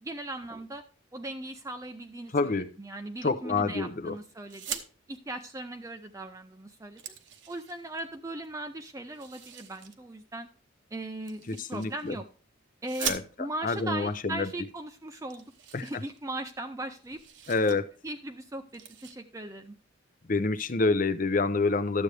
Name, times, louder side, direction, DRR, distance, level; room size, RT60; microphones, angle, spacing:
voice 1, 0.0-0.8 1.1-4.8 5.1-7.0 7.5-10.5 10.9-12.2 12.8-15.5 15.8-17.2 18.0-19.7, right 1 dB, 15° right, 6 dB, 0.5 m, -38 dB
voice 2, 2.3-2.7 3.2-4.2 11.5-12.2 13.0-13.2 13.6-14.5 15.7-15.8 17.5-17.9 20.3-22.0, left 3 dB, 40° left, 12 dB, 0.6 m, -27 dB
sound 1, 4.4-4.9 6.2-6.3 6.6-8.0 9.1-10.0 11.3-12.2 12.8-13.7 14.6-14.7 14.9-15.0 15.3-16.6 16.9-17.8 18.1-18.3 18.7-19.1, right 8 dB, 65° right, 1.0 m, -40 dB
12.0 x 7.9 x 3.3 m, 0.39 s
head